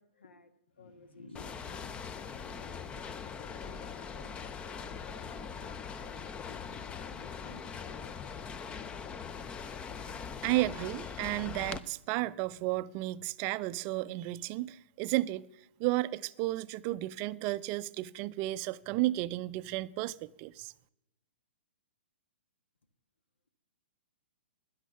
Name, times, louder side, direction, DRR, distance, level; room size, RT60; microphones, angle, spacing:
voice 1, 0.0-8.4, left 3 dB, 80° left, 1.5 m, -56 dB
sound 1, 0.7-5.7, left 2 dB, 50° left, 2.5 m, -63 dB
sound 2, 1.3-11.8, left 6 dB, 15° left, 0.5 m, -41 dB
voice 2, 10.4-15.5 15.8-20.7, right 17 dB, 35° right, 0.4 m, -33 dB
12.0 x 10.0 x 6.8 m
hypercardioid pair, 120°, 6 cm